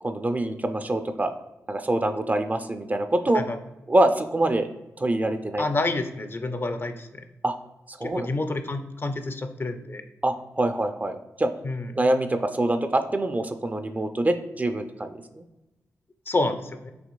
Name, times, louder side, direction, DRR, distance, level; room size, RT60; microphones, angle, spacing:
voice 1, 0.0-1.3 1.7-3.4 3.9-4.7 5.0-5.7 7.4-7.5 7.9-8.3 10.2-11.5 12.0-15.4, right 1 dB, 25° right, 8 dB, 0.4 m, -25 dB
voice 2, 5.6-7.3 8.0-10.0 11.6-11.9 16.3-16.9, left 2 dB, 40° left, 8 dB, 0.4 m, -28 dB
6.0 x 2.9 x 2.2 m, 1.0 s
cardioid pair, 50°, 6 cm